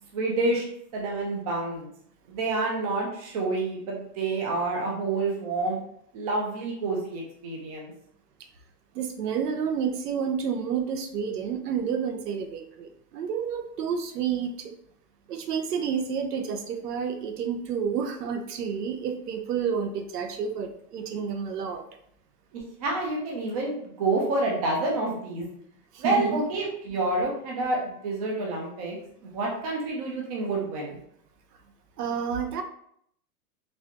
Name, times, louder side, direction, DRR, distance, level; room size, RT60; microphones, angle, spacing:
voice 1, 0.1-0.6 0.9-1.9 2.3-5.8 6.1-7.9 22.5-25.5 26.0-31.0, right 2 dB, 25° right, -1 dB, 0.5 m, -28 dB
voice 2, 8.9-14.7 15.3-21.8 25.9-26.4 32.0-32.6, right 7 dB, 75° right, 6 dB, 0.8 m, -30 dB
4.1 x 2.4 x 2.9 m, 0.68 s
hypercardioid pair, 155°, 48 cm